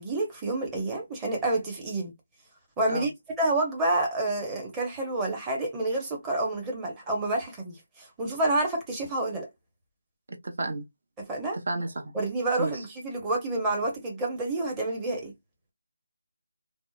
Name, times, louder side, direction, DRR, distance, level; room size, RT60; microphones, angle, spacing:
voice 1, 0.0-2.1 2.8-3.1 3.4-9.5 11.2-11.6 12.1-15.3, right 2 dB, 10° right, 0.7 m, -29 dB
voice 2, 10.4-10.8 11.7-12.1 12.6-12.7, right 2 dB, 55° right, 0.9 m, -31 dB
2.7 x 2.0 x 2.3 m
figure-of-eight pair, 160°, 0 cm